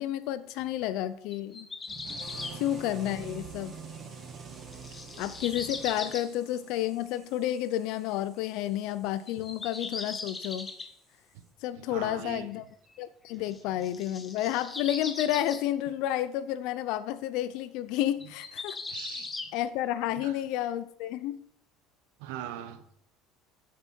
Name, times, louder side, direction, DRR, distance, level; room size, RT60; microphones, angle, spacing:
voice 1, 0.0-1.7 2.5-3.7 5.2-10.7 11.6-12.6 13.0-18.8 19.5-21.4, left 12 dB, 70° left, 14 dB, 0.6 m, -31 dB
sound 1, 1.3-2.6 4.0-4.1 4.5-6.3 7.5-7.6 9.3-10.9 13.5-15.6 18.2-19.5, left 3 dB, 20° left, 1.2 m, -39 dB
sound 2, 1.9-6.8, right 7 dB, 40° right, 1.1 m, -45 dB
sound 3, 2.2-11.5, left 2 dB, 5° left, 5.3 m, -54 dB
voice 2, 2.3-2.6 11.9-12.5 18.9-19.3 20.1-20.3 22.2-22.8, right 11 dB, 85° right, 9 dB, 1.4 m, -40 dB
13.0 x 7.4 x 4.5 m, 0.70 s
cardioid pair, 125°, 0 cm